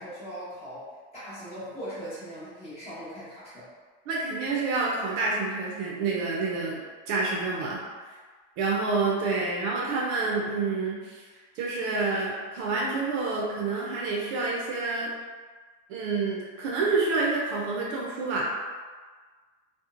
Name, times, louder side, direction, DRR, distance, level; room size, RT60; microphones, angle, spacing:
voice 1, 0.0-3.7, equal, 15° left, -11 dB, 0.9 m, -40 dB
voice 2, 4.1-6.8 7.1-7.8 8.1-8.2 8.6-11.2 11.6-15.1 15.9-18.4, right 3 dB, 50° right, -4 dB, 0.5 m, -28 dB
2.9 x 2.1 x 2.4 m, 1.5 s
cardioid pair, 170°, 35 cm